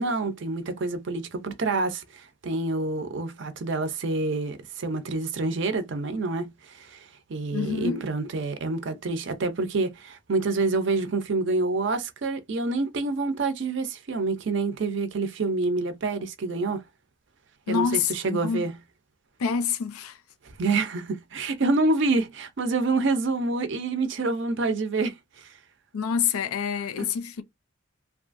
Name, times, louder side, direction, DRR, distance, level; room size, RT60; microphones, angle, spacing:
voice 1, 0.0-16.8 17.7-18.7 20.6-25.5 27.0-27.1, right 3 dB, 55° right, 0.5 m, -27 dB
voice 2, 7.5-8.0 17.7-18.7 19.4-20.2 25.9-27.4, left 6 dB, 90° left, 0.4 m, -27 dB
2.7 x 2.3 x 2.5 m
head